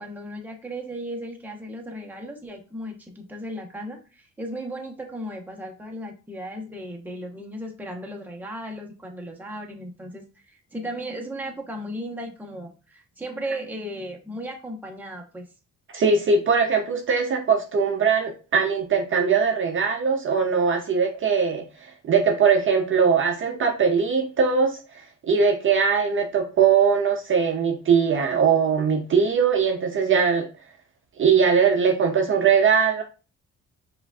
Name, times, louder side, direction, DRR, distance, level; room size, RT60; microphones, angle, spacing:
voice 1, 0.0-15.5, equal, 5° right, 0 dB, 0.9 m, -36 dB
voice 2, 15.9-24.8 25.2-30.5 31.2-33.0, right 6 dB, 40° right, 3 dB, 0.6 m, -21 dB
4.9 x 2.5 x 2.3 m, 0.34 s
cardioid pair, 90°, 30 cm